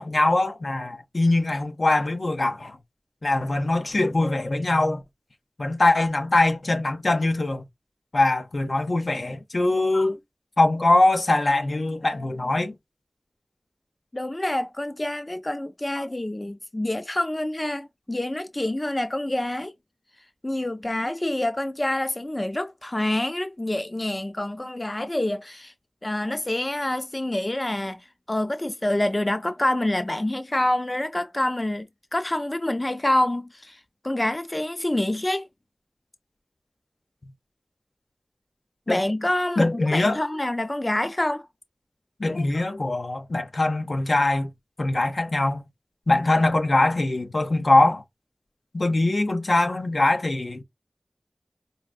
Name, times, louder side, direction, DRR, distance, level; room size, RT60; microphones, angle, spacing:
voice 1, 0.0-2.8 3.2-5.0 5.6-7.6 8.1-10.2 10.6-12.8 16.0-16.1 38.9-39.0 39.6-40.2 42.2-44.5 44.8-45.6 46.1-48.0 48.7-50.6, left 2 dB, 80° left, 0.7 m, -22 dB
voice 2, 14.1-19.7 20.4-25.7 26.0-35.5 38.9-41.4, left 1 dB, 35° left, 0.4 m, -27 dB
4.7 x 2.5 x 2.3 m
wide cardioid pair, 60°, 0 cm